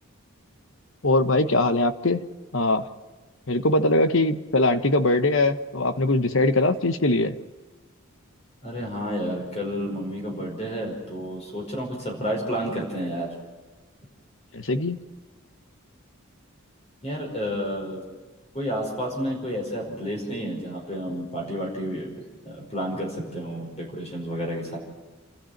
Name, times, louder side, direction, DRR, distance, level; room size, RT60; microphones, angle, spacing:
voice 1, 1.0-2.2 2.5-2.8 3.5-7.3 14.5-15.0, left 2 dB, 60° left, 10 dB, 1.2 m, -21 dB
voice 2, 8.6-13.3 17.0-18.0 18.5-22.1 22.4-24.8, equal, 30° left, 0 dB, 5.3 m, -30 dB
29.0 x 13.5 x 7.4 m, 1.3 s
head